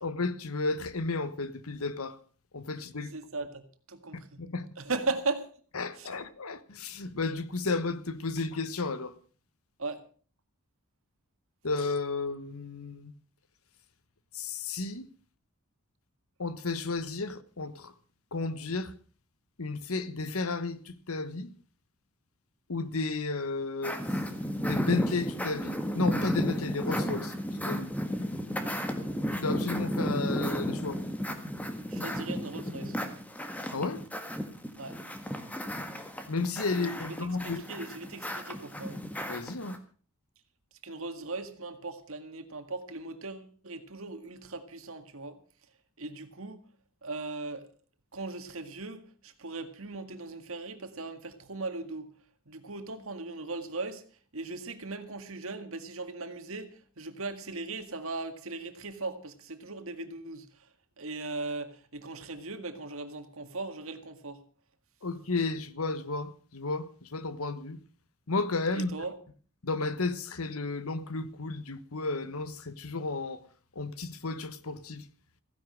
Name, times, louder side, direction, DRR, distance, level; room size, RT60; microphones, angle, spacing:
voice 1, 0.0-2.2 2.5-3.1 4.4-4.7 5.7-9.1 11.6-13.1 14.3-15.1 16.4-17.9 18.3-18.9 19.6-21.5 22.7-24.0 24.6-27.3 27.6-27.9 29.4-31.0 33.7-34.1 36.3-37.6 39.3-39.8 65.0-67.8 68.3-69.1 69.6-73.4 73.8-75.0, left 3 dB, 70° left, 1.2 m, -33 dB
voice 2, 3.1-4.4 4.8-5.5 6.0-6.2 9.8-10.0 31.9-33.0 34.8-35.0 36.8-39.0 40.8-45.4 46.0-46.6 47.0-47.7 48.1-52.1 52.5-54.0 54.3-60.5 61.0-64.4 68.7-69.1, right 3 dB, 65° right, 1.9 m, -38 dB
sound 1, 23.8-39.8, equal, 5° left, 1.6 m, -33 dB
15.5 x 10.0 x 6.4 m
head